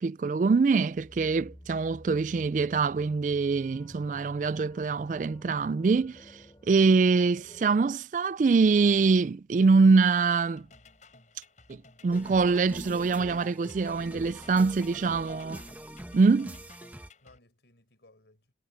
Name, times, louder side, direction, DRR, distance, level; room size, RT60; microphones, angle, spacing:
voice 1, 0.0-10.7 11.7-15.6 16.1-16.6, right 4 dB, 45° right, 0.3 m, -24 dB
sound 1, 0.9-7.7, equal, 20° left, 6.6 m, -52 dB
sound 2, 10.6-17.4, left 3 dB, 40° left, 7.5 m, -57 dB
sound 3, 12.1-17.1, right 1 dB, 10° right, 1.3 m, -44 dB
voice 2, 17.2-18.5, left 2 dB, 75° left, 4.7 m, -60 dB
head